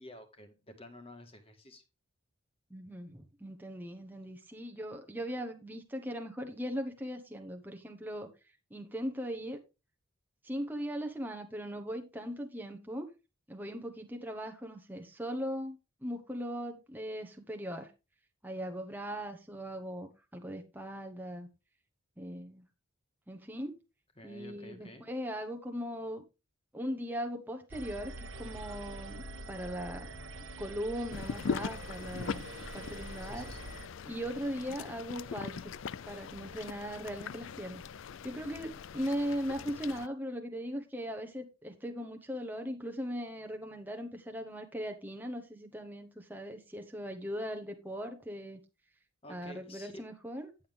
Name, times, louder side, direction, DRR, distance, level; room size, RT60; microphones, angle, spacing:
voice 1, 0.0-1.8 24.1-25.1 33.2-33.7 49.2-50.0, left 1 dB, 25° left, 1.7 m, -51 dB
voice 2, 2.7-8.3 8.7-9.6 10.4-13.1 13.5-17.9 18.4-21.5 22.2-22.6 23.3-23.8 24.2-26.2 26.7-30.1 30.6-32.5 32.7-33.5 34.0-35.7 36.1-37.8 38.2-48.6 49.3-50.5, equal, 10° right, 1.0 m, -39 dB
sound 1, 27.7-33.9, right 2 dB, 60° right, 1.3 m, -45 dB
sound 2, 31.1-40.1, left 6 dB, 60° left, 0.4 m, -41 dB
10.5 x 7.9 x 3.5 m
head